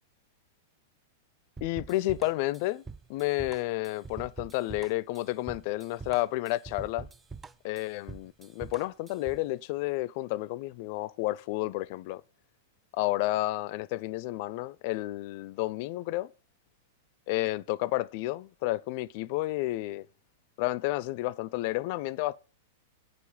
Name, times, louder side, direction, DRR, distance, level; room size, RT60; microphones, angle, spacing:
voice 1, 1.6-2.8 3.1-7.1 7.6-12.2 12.9-16.3 17.3-20.1 20.6-22.4, left 18 dB, 50° left, 0.4 m, -31 dB
sound 1, 1.6-9.5, right 4 dB, 15° right, 0.5 m, -45 dB
9.4 x 6.9 x 5.5 m
figure-of-eight pair, 95°, 0 cm